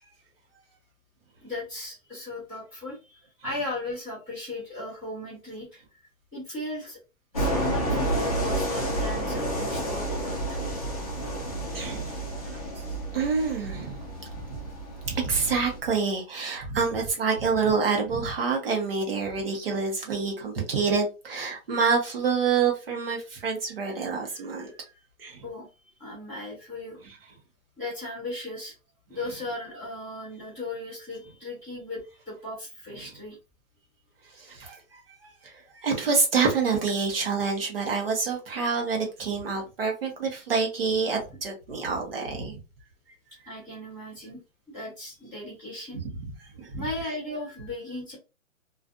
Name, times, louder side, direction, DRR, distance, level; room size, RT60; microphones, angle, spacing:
voice 1, 1.4-5.8 6.3-7.0 7.3-10.6 25.4-27.0 27.8-28.7 29.1-33.4 43.4-44.4 44.7-46.0 46.7-48.2, left 2 dB, 5° right, 0.9 m, -37 dB
sound 1, 7.3-15.8, right 1 dB, 30° left, 0.5 m, -30 dB
voice 2, 11.7-12.2 13.1-14.0 15.0-24.7 25.2-25.4 34.4-35.0 35.4-35.5 35.8-42.6 46.6-46.8, right 5 dB, 45° right, 0.9 m, -27 dB
2.4 x 2.4 x 2.4 m
hypercardioid pair, 175°, 42 cm